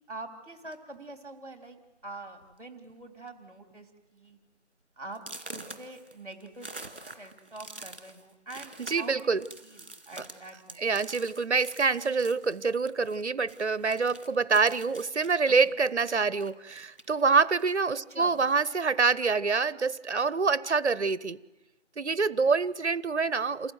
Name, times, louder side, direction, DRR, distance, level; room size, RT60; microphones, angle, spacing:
voice 1, 0.1-1.8 2.0-4.4 5.0-11.0 15.6-15.8 18.1-18.4, right 2 dB, 30° right, 6 dB, 2.7 m, -45 dB
sound 1, 0.6-1.0 1.8-1.9 2.3-2.5 2.8-3.3 3.7-3.8 4.3-4.4 5.1-13.2 13.5-17.2 17.6-18.6, right 2 dB, 50° right, 2.1 m, -47 dB
voice 2, 8.8-9.4 10.2-10.3 10.8-21.4 22.0-23.7, right 4 dB, 65° right, 20 dB, 0.7 m, -26 dB
28.0 x 15.0 x 7.9 m, 1.1 s
figure-of-eight pair, 175°, 36 cm